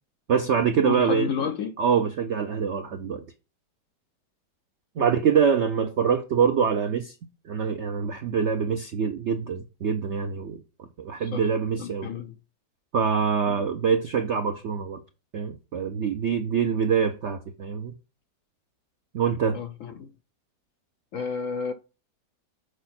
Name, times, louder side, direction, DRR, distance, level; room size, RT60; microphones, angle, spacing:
voice 1, 0.3-1.3 1.8-3.3 5.0-7.2 7.4-12.1 12.9-15.0 15.3-17.9 19.1-19.6, right 7 dB, 70° right, 0.6 m, -25 dB
voice 2, 0.8-1.7 5.0-5.1 11.3-11.5 11.8-12.3 13.5-13.6 19.5-20.1 21.1-21.7, left 6 dB, 65° left, 0.8 m, -31 dB
6.5 x 4.6 x 4.2 m
omnidirectional pair, 1.9 m